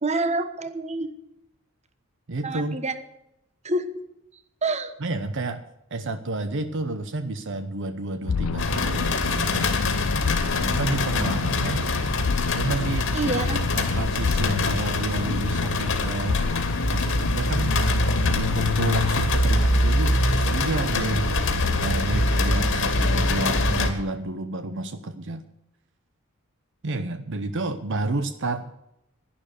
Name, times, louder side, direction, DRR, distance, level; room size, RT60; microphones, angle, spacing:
voice 1, 0.0-1.1 2.4-2.9 3.6-3.8 4.6-4.9 13.1-13.6, right 2 dB, 30° right, 11 dB, 1.2 m, -27 dB
voice 2, 2.3-2.8 5.0-5.6 5.9-9.7 10.6-11.9 12.5-13.1 13.6-16.4 16.9-17.8 18.3-21.3 21.8-25.4 26.8-28.7, right 2 dB, 60° right, 10 dB, 0.8 m, -30 dB
sound 1, 8.2-19.2, left 5 dB, 90° left, 0.5 m, -29 dB
sound 2, 8.6-23.9, left 2 dB, 65° left, 2.5 m, -24 dB
11.5 x 11.5 x 6.8 m, 0.84 s
head